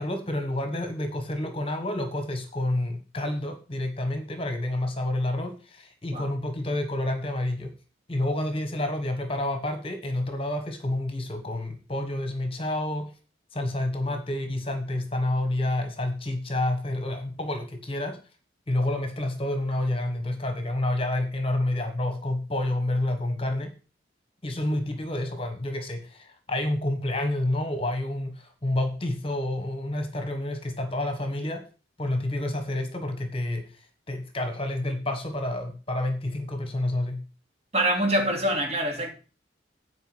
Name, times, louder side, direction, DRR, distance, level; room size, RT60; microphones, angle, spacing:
voice 1, 0.0-7.7 8.1-13.1 13.5-18.2 18.7-23.7 24.4-31.6 32.0-37.2, left 1 dB, 30° left, 1.3 m, -29 dB
voice 2, 37.7-39.1, right 1 dB, 35° right, 2.5 m, -25 dB
9.3 x 4.8 x 7.8 m
head